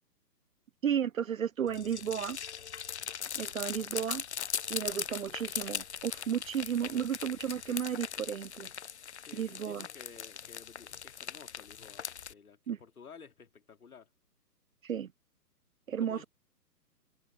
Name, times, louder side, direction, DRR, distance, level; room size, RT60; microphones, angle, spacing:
voice 1, 0.8-2.4 3.4-4.2 4.7-8.7 9.3-9.9 12.7-12.8 14.8-15.1 15.9-16.2, right 8 dB, 55° right, 0.5 m, -33 dB
sound 1, 1.7-12.3, left 8 dB, 45° left, 0.6 m, -40 dB
voice 2, 9.2-14.1 16.0-16.3, left 6 dB, 60° left, 2.4 m, -53 dB
figure-of-eight pair, 130°, 49 cm